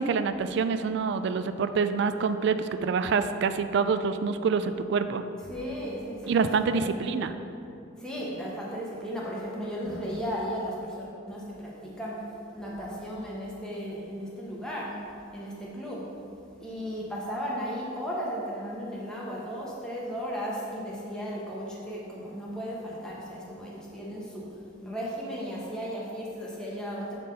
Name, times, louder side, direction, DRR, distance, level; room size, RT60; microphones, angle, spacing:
voice 1, 0.0-5.2 6.3-7.3, right 5 dB, 60° right, 10 dB, 0.3 m, -26 dB
voice 2, 5.4-7.2 8.0-15.0 15.3-16.0 16.6-24.5 24.8-27.2, equal, 5° left, -6 dB, 1.0 m, -35 dB
7.5 x 3.4 x 5.4 m, 2.6 s
head